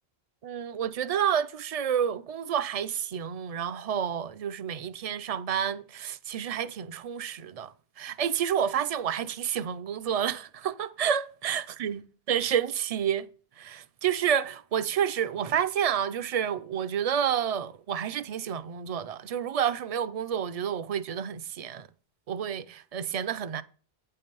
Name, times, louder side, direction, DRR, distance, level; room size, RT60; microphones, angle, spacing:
voice 1, 0.4-12.0 12.3-13.3 13.6-21.9 22.3-23.6, right 8 dB, 55° right, 0.4 m, -29 dB
9.2 x 5.6 x 5.4 m
omnidirectional pair, 1.1 m